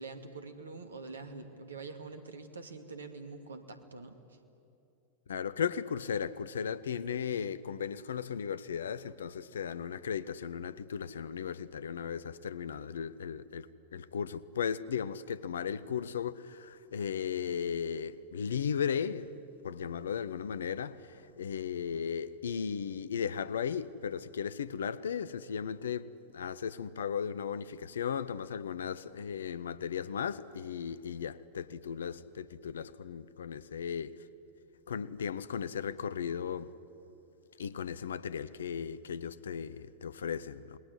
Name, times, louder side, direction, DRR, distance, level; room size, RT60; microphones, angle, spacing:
voice 1, 0.0-4.4, right 3 dB, 70° right, 2.2 m, -45 dB
voice 2, 5.3-13.7 13.9-19.3 19.6-34.2 34.9-36.7 37.6-40.8, left 7 dB, 65° left, 0.8 m, -36 dB
28.0 x 20.5 x 9.8 m
figure-of-eight pair, 90°, 0 cm